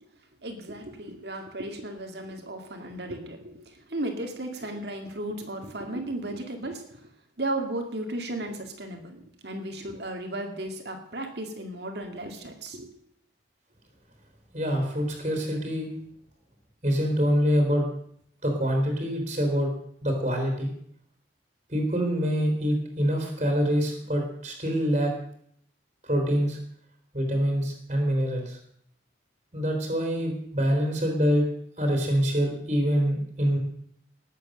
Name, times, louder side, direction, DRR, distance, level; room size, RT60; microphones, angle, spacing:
voice 1, 0.4-7.0 7.4-12.9, right 1 dB, 60° right, 4 dB, 2.1 m, -35 dB
voice 2, 14.5-15.9 16.8-17.9 18.4-19.7 20.0-20.7 21.7-25.1 26.0-26.6 27.1-28.6 29.5-31.5 31.8-33.6, equal, 35° right, 1 dB, 3.7 m, -25 dB
19.5 x 8.3 x 6.6 m, 0.68 s
head